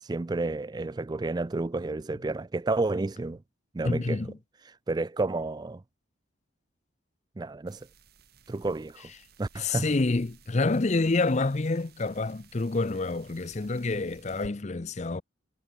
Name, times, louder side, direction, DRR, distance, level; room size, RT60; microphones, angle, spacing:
voice 1, 0.0-3.4 3.7-4.2 4.9-5.8 7.4-7.9 8.5-9.1 9.4-9.9, right 2 dB, 20° right, 0.3 m, -30 dB
voice 2, 3.8-4.4 9.6-15.2, left 3 dB, 35° left, 0.6 m, -28 dB
sound 1, 7.7-14.5, right 3 dB, 50° right, 2.7 m, -56 dB
head